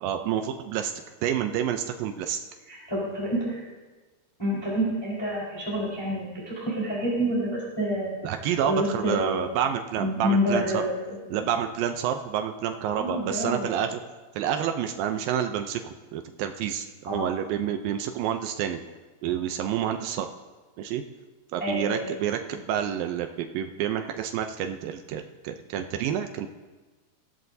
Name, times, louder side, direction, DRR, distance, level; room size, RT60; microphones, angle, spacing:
voice 1, 0.0-0.9 1.2-2.4 8.2-10.8 11.3-14.0 14.4-18.8 19.2-20.3 20.8-21.0 21.5-26.5, right 9 dB, 80° right, 6 dB, 2.1 m, -29 dB
voice 2, 2.7-3.6 4.4-9.5 10.0-11.4 12.8-13.7 17.1-17.3 21.6-22.1, equal, 5° left, -7 dB, 3.8 m, -28 dB
21.5 x 15.5 x 2.7 m, 1.3 s
omnidirectional pair, 4.8 m